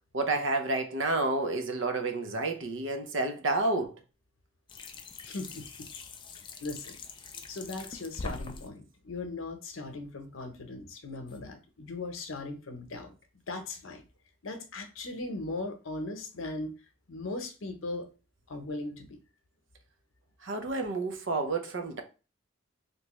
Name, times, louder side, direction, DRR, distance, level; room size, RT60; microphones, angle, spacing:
voice 1, 0.1-4.0 20.4-22.0, right 2 dB, 70° right, 0.6 m, -30 dB
sound 1, 4.7-8.7 11.3-11.4, left 3 dB, 25° left, 0.3 m, -43 dB
voice 2, 5.2-5.9 6.4-7.0 7.5-13.1 13.5-14.0 14.4-16.7 17.1-18.1 18.5-19.2, left 2 dB, 80° left, 0.8 m, -38 dB
3.3 x 2.9 x 3.0 m
head